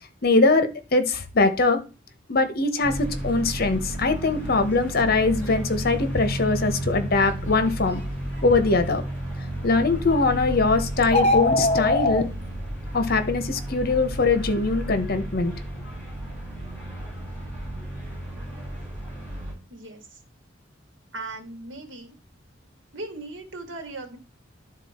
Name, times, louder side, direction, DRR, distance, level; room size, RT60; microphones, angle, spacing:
voice 1, 0.2-1.8 2.3-8.0 8.4-9.0 9.6-12.3 12.9-15.5, left 3 dB, 55° left, 9 dB, 1.1 m, -22 dB
sound 1, 2.8-19.5, right 1 dB, 10° left, 5.4 m, -32 dB
sound 2, 11.0-12.2, left 2 dB, 35° left, 0.8 m, -21 dB
voice 2, 19.7-20.2 21.1-22.1 22.9-24.2, right 2 dB, 85° right, 5 dB, 2.0 m, -38 dB
11.5 x 3.9 x 4.4 m, 0.31 s
head